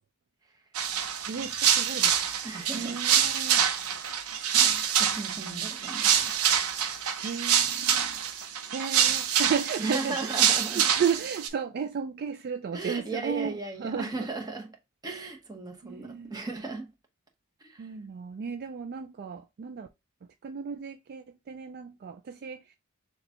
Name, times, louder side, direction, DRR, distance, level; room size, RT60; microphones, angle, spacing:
sound 1, 0.7-11.5, right 8 dB, 75° right, 0.7 m, -26 dB
voice 1, 1.3-2.2 2.7-3.6 5.3-5.7 7.2-8.2 8.7-14.3 15.8-16.4 17.8-19.9 20.4-22.8, right 6 dB, 45° right, 0.3 m, -34 dB
voice 2, 2.4-3.0 3.8-6.4 9.8-10.8 12.7-14.7 15.0-16.9 17.6-17.9, right 3 dB, 20° right, 0.9 m, -37 dB
6.6 x 2.3 x 2.8 m
head